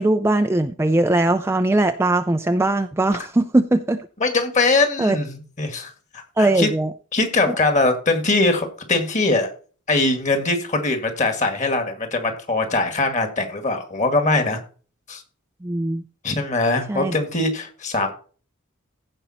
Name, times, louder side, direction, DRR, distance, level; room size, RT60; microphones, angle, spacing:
voice 1, 0.0-4.1 5.0-5.2 6.4-6.9 7.5-7.6 15.6-16.0 16.9-17.1, right 2 dB, 10° right, 7 dB, 0.4 m, -20 dB
voice 2, 4.2-5.9 6.4-6.7 7.1-9.5 9.9-14.6 15.1-15.2 16.2-18.1, left 2 dB, 35° left, 6 dB, 2.0 m, -21 dB
15.5 x 5.3 x 4.2 m, 0.39 s
head